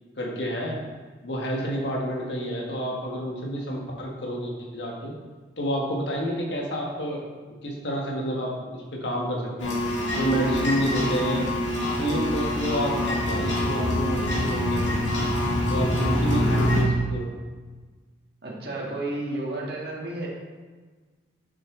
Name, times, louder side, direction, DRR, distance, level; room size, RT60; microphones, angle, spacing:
voice 1, 0.2-0.8 1.2-5.1 5.6-7.2 7.6-9.8 10.1-11.5 12.0-15.0 15.7-17.3, equal, 75° left, -2 dB, 1.5 m, -29 dB
sound 1, 9.6-16.8, left 1 dB, 90° left, 2.0 m, -25 dB
voice 2, 18.4-20.3, right 2 dB, 55° right, -3 dB, 1.7 m, -32 dB
6.9 x 6.3 x 3.8 m, 1.4 s
head